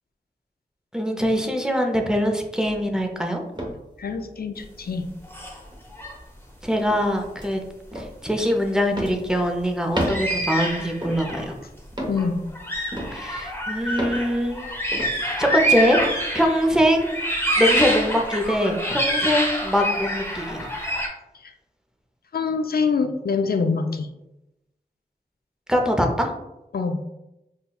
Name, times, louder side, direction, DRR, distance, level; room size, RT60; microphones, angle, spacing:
voice 1, 0.9-3.4 6.6-7.6 7.9-11.6 13.1-14.7 15.4-16.0 16.3-17.2 17.6-20.7 25.7-26.3, equal, 5° right, 2 dB, 0.6 m, -23 dB
sound 1, 2.6-3.0 3.6-4.4 4.8-4.9 5.7-6.1 6.9-7.1 7.4-7.5 7.9-8.1 8.9-9.3 9.9-10.4 11.0-11.4 11.9-12.3 12.9-13.4 13.9-14.3 14.9-15.2 15.9-16.2, equal, 25° right, 0.9 m, -31 dB
voice 2, 4.0-5.1 12.1-12.4 13.8-13.9 21.3-21.5 22.3-24.1 26.7-27.0, left 5 dB, 65° left, 7 dB, 0.4 m, -25 dB
sound 2, 5.2-5.6 5.9-6.1 7.0-7.1 10.0-11.5 12.2-12.3 12.6-16.7 17.0-21.1, equal, 15° left, 0.9 m, -26 dB
5.6 x 2.2 x 2.3 m, 0.93 s
wide cardioid pair, 55°, 17 cm